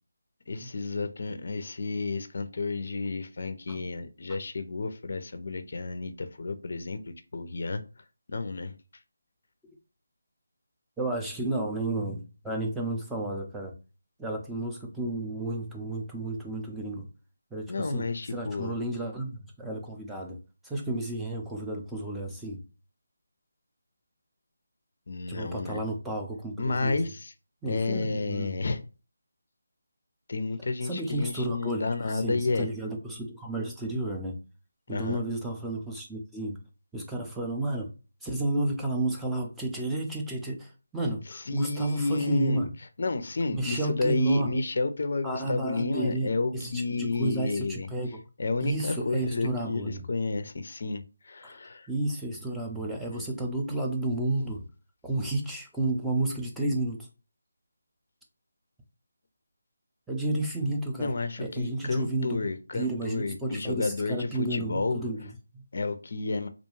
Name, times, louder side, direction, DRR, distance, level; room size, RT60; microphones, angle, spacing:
voice 1, 0.5-7.8 8.3-8.7 17.7-18.7 25.1-25.8 26.6-27.3 27.7-28.8 30.3-32.7 34.9-35.2 41.1-41.2 41.5-42.6 43.0-47.9 48.4-51.9 61.0-65.0 65.7-66.5, left 3 dB, 55° left, 0.4 m, -31 dB
voice 2, 11.0-13.7 14.2-17.1 17.5-20.4 20.6-22.6 25.3-27.0 27.6-28.6 30.8-34.4 34.9-36.6 36.9-37.9 38.2-42.8 43.5-44.6 45.2-48.2 48.6-50.0 51.4-51.5 51.9-54.6 55.0-57.1 60.1-62.4 62.7-65.6, right 2 dB, 5° right, 0.5 m, -32 dB
2.4 x 2.2 x 3.0 m
figure-of-eight pair, 165°, 0 cm